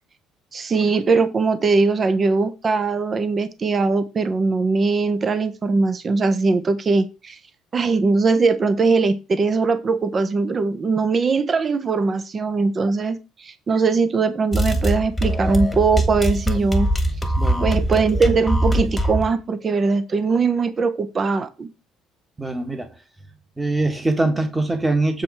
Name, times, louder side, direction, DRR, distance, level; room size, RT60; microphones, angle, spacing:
voice 1, 0.5-7.4 7.7-16.9 17.6-21.7, right 4 dB, 30° right, 0.8 m, -20 dB
sound 1, 14.5-19.3, equal, 10° left, 1.5 m, -22 dB
voice 2, 17.4-17.7 22.4-22.9 23.6-25.2, right 2 dB, 15° right, 1.6 m, -22 dB
7.2 x 4.8 x 4.7 m
cardioid pair, 115°, 0 cm